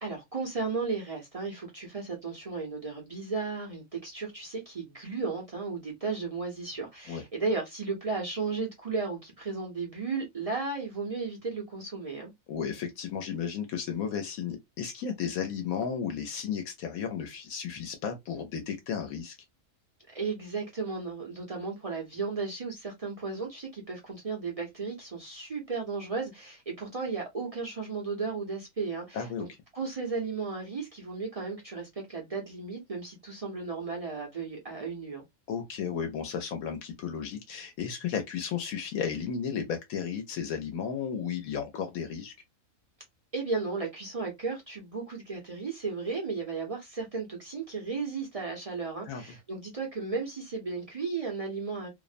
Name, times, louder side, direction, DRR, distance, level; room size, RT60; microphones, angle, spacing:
voice 1, 0.0-12.3 20.1-29.5 29.7-35.2 43.3-51.9, right 4 dB, 50° right, 0.4 m, -34 dB
voice 2, 12.5-19.4 29.1-29.4 35.5-42.3 49.1-49.2, left 7 dB, 75° left, 1.0 m, -34 dB
2.6 x 2.1 x 2.4 m
omnidirectional pair, 1.5 m